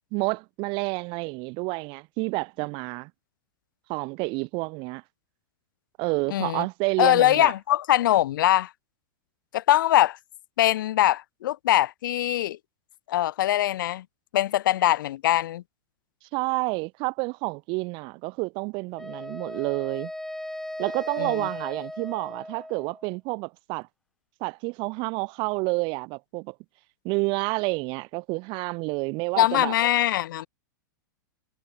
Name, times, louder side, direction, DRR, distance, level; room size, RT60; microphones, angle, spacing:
voice 1, 0.1-3.1 3.9-5.0 6.0-7.5 16.3-20.1 20.8-23.9 24.4-26.5 27.0-29.7, right 28 dB, 50° right, 3.4 m, -29 dB
voice 2, 6.3-6.7 7.0-8.7 9.5-10.2 10.6-12.6 13.1-14.0 14.3-15.6 21.2-21.5 29.4-30.5, left 13 dB, 70° left, 2.8 m, -22 dB
Wind instrument woodwind instrument, 19.0-23.1, left 1 dB, 5° left, 4.8 m, -37 dB
hypercardioid pair, 115°, 11 cm